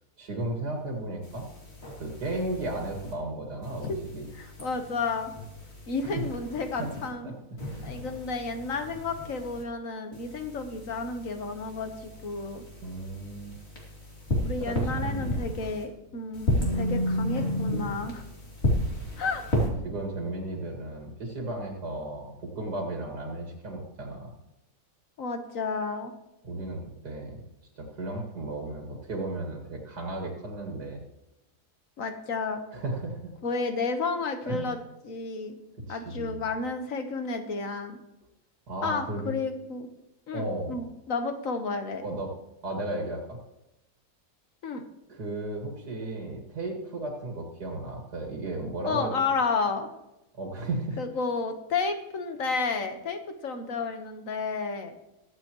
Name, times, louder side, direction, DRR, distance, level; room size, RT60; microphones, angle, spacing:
voice 1, 0.2-1.5 2.0-4.3 6.0-6.1 6.8-6.9 7.2-7.3 7.7-7.9 12.8-13.6 14.6-15.5 19.8-24.3 26.4-27.4 27.8-31.0 32.7-33.3 34.4-34.7 35.7-36.4 38.7-39.4 40.3-40.8 42.0-42.3 42.6-43.4 45.1-49.1 50.3-51.0, right 2 dB, 80° right, 1 dB, 2.5 m, -34 dB
sound 1, 1.2-3.1 3.6-7.1 7.6-9.6 10.1-15.8 16.3-19.7, equal, 40° left, 2.9 m, -33 dB
voice 2, 4.3-5.3 5.9-7.3 7.8-12.6 14.4-18.3 19.2-19.4 25.2-26.1 32.0-32.6 33.4-34.8 35.0-35.5 35.9-38.0 38.8-39.9 40.3-42.0 44.6-44.8 48.8-49.9 51.0-54.9, left 4 dB, 55° left, 6 dB, 1.6 m, -31 dB
22.5 x 8.0 x 3.0 m, 0.92 s
omnidirectional pair, 1.7 m